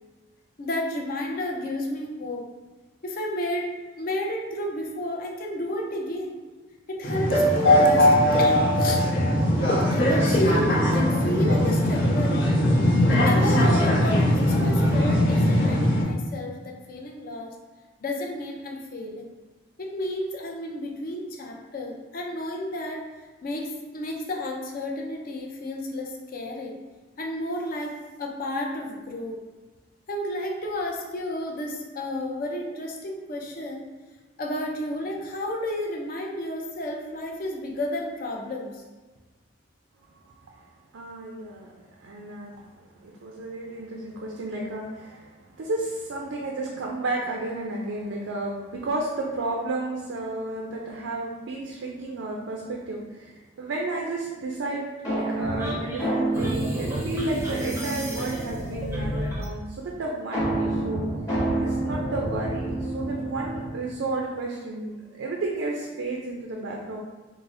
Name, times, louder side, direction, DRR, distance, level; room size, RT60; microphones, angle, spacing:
voice 1, 0.6-2.4 3.0-3.7 4.0-6.4 6.9-8.1 8.4-9.0 9.9-12.5 13.2-17.5 18.0-19.3 19.8-23.0 23.4-26.8 27.2-27.9 28.2-29.4 30.1-33.9 34.4-38.8, left 1 dB, 45° left, 0 dB, 0.4 m, -31 dB
sound 1, 7.0-16.0, equal, 70° left, 0.9 m, -20 dB
voice 2, 40.2-40.7 40.9-54.8 55.1-61.1 61.6-67.0, right 2 dB, 80° right, -1 dB, 0.4 m, -32 dB
sound 2, 55.0-58.8 60.3-63.9, right 1 dB, 15° left, 1.1 m, -28 dB
sound 3, 55.6-59.5, equal, 15° right, 0.5 m, -34 dB
4.8 x 2.0 x 2.5 m, 1.2 s
head